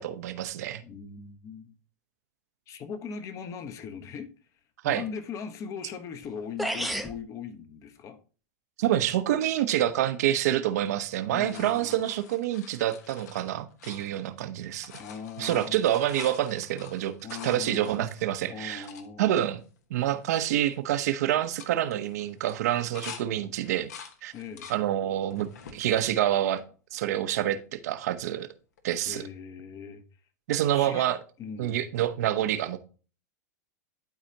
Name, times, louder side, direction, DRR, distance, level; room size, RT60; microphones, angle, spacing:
voice 1, 0.0-0.8 4.8-5.0 8.8-14.9 15.4-17.1 17.4-18.8 19.2-19.6 19.9-23.9 24.2-24.3 24.7-26.6 26.9-28.5 28.8-29.2 30.5-31.2 31.6-32.8, right 12 dB, 70° right, 0.8 m, -27 dB
voice 2, 0.8-1.7 2.7-4.3 4.9-8.2 8.9-9.1 11.3-12.0 15.0-15.9 17.2-18.1 18.5-19.4 24.3-24.7 29.1-30.0 30.7-31.1 31.4-31.8, left 6 dB, 35° left, 1.0 m, -40 dB
sound 1, 6.2-6.3 6.6-7.2, equal, ahead, 0.7 m, -30 dB
sound 2, 10.8-14.4 14.7-19.1 19.6-19.7 19.9-20.4 20.7-21.0 21.4-23.2 23.6-24.8 25.3-25.8 26.4-27.2 28.8-28.9, left 7 dB, 75° left, 1.2 m, -46 dB
12.0 x 4.2 x 2.8 m
hypercardioid pair, 115°, 9 cm